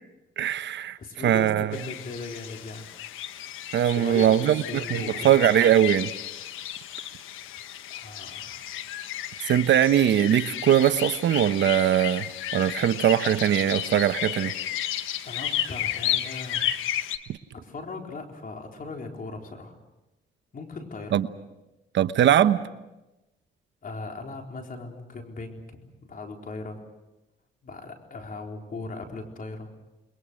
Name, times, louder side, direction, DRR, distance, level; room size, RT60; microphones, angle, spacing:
voice 1, 0.4-1.0 1.2-1.7 3.7-6.1 9.5-12.3 12.5-14.5 21.1-21.3 21.9-22.6, right 10 dB, 65° right, 1.0 m, -21 dB
voice 2, 1.0-2.9 3.9-5.4 7.9-8.7 15.2-16.7 17.5-19.8 20.5-21.2 23.8-26.8 27.6-29.7, left 3 dB, 45° left, 4.3 m, -38 dB
sound 1, 1.7-17.2, left 11 dB, 90° left, 1.3 m, -33 dB
29.0 x 22.0 x 6.4 m
cardioid pair, 90°, 20 cm